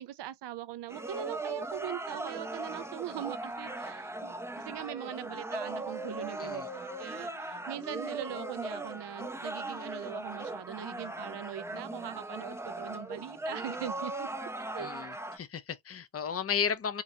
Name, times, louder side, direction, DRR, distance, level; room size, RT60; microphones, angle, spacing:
voice 1, 0.0-14.3 14.7-14.9, right 11 dB, 65° right, 0.6 m, -41 dB
sound 1, 0.9-15.4, right 2 dB, 5° right, 0.6 m, -39 dB
voice 2, 14.8-17.0, left 7 dB, 30° left, 0.6 m, -34 dB
3.9 x 2.5 x 2.7 m
cardioid pair, 100°, 45 cm